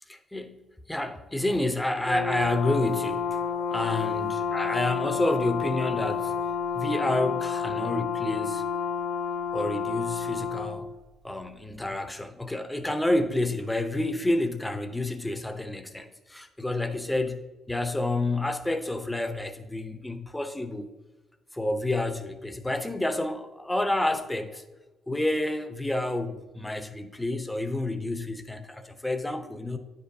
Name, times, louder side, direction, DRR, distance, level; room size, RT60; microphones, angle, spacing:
voice 1, 0.1-3.4 3.7-6.4 6.7-8.6 9.5-10.9 11.2-17.4 17.7-20.9 21.5-24.6 25.1-29.8, left 2 dB, 10° left, 0.6 m, -29 dB
Brass instrument, 2.0-10.8, left 6 dB, 80° left, 1.4 m, -30 dB
9.3 x 5.3 x 2.7 m
cardioid pair, 90°, 0 cm